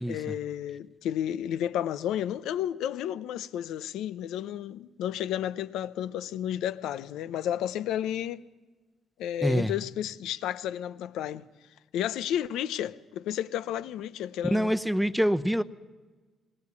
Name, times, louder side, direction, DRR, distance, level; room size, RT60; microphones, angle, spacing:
voice 1, 0.1-8.4 9.2-11.4 11.9-14.7, left 11 dB, 85° left, 0.7 m, -32 dB
voice 2, 9.4-9.7 14.5-15.6, equal, ahead, 0.9 m, -25 dB
21.0 x 19.0 x 8.5 m
cardioid pair, 90°, 0 cm